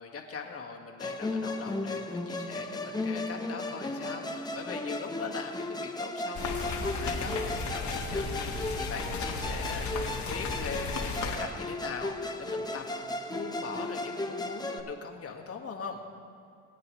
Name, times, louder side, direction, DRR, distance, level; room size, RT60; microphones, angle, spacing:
voice 1, 0.0-16.0, left 5 dB, 50° left, 2 dB, 1.7 m, -41 dB
Musical instrument, 1.0-14.8, left 2 dB, 15° left, 0.8 m, -35 dB
sound 1, 6.3-11.4, left 3 dB, 75° left, 1.6 m, -34 dB
21.0 x 9.4 x 3.2 m, 2.5 s
cardioid pair, 90°, 30 cm